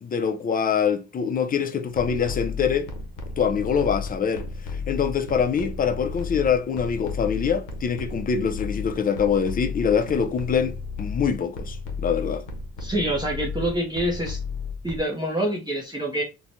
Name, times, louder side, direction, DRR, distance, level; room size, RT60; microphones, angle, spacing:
voice 1, 0.0-2.9 3.4-4.5 4.9-12.4, left 7 dB, 30° left, 0.4 m, -24 dB
sound 1, 1.9-15.0, left 4 dB, 85° left, 0.6 m, -34 dB
voice 2, 12.8-14.4 14.8-16.2, right 1 dB, 15° right, 0.6 m, -26 dB
3.1 x 2.1 x 2.5 m
cardioid pair, 90°, 30 cm